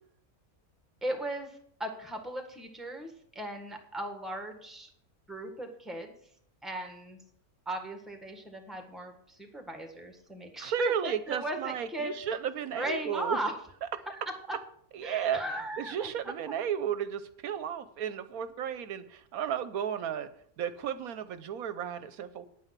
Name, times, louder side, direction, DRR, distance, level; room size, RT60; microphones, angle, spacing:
voice 1, 1.0-4.9 5.3-6.1 6.6-7.2 7.6-12.1 12.7-13.5 14.1-14.6 15.0-16.1, right 1 dB, ahead, 5 dB, 1.5 m, -37 dB
voice 2, 10.6-13.4 14.9-15.4 15.8-20.3 20.6-22.5, right 9 dB, 75° right, 12 dB, 1.1 m, -34 dB
9.4 x 8.9 x 5.9 m, 0.66 s
omnidirectional pair, 1.6 m